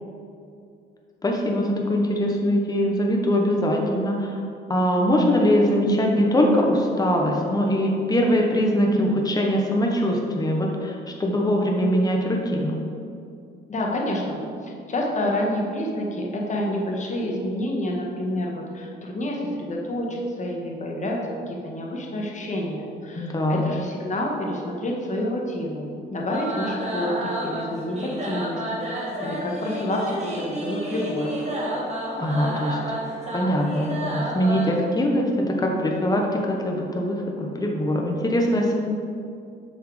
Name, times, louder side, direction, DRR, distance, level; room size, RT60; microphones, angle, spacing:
voice 1, 1.2-4.4 4.7-10.9 11.2-12.8 23.2-23.7 32.2-32.8 33.3-38.7, equal, 20° left, 0 dB, 1.1 m, -22 dB
voice 2, 13.7-25.8 26.1-31.4, left 1 dB, 35° left, -1 dB, 1.6 m, -28 dB
sound 1, 26.3-34.8, equal, 35° right, 1.9 m, -30 dB
6.8 x 6.3 x 5.0 m, 2.5 s
cardioid pair, 90°, 20 cm